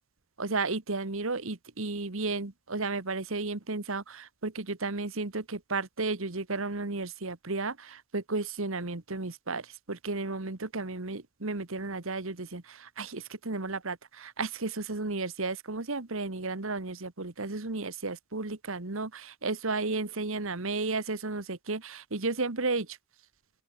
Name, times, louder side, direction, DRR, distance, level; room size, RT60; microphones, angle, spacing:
voice 1, 0.4-23.0, right 3 dB, 70° right, 1.5 m, -33 dB
open air
head